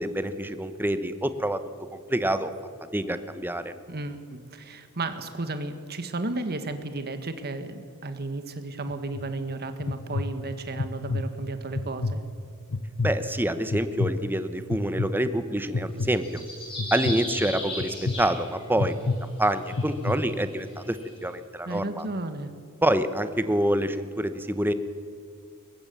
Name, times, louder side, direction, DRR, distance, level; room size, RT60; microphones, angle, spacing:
voice 1, 0.0-1.6 1.9-2.5 2.9-3.7 13.0-16.4 16.9-21.0 21.2-22.0 22.8-24.7, right 1 dB, 10° right, 11 dB, 1.0 m, -27 dB
voice 2, 3.9-12.2 21.6-22.5, right 2 dB, 45° right, 9 dB, 1.7 m, -33 dB
sound 1, 8.9-9.2 9.8-10.3 10.8-11.2 11.7-12.2 12.7-13.1 13.7-14.1 14.7-15.1 15.7-16.1 16.8-17.1 17.8-18.1 18.8-19.2 19.7-20.2, left 3 dB, 60° left, 1.0 m, -27 dB
sound 2, 16.0-18.9 19.5-21.1, left 1 dB, 25° left, 7.8 m, -36 dB
22.0 x 19.0 x 7.0 m, 2.4 s
head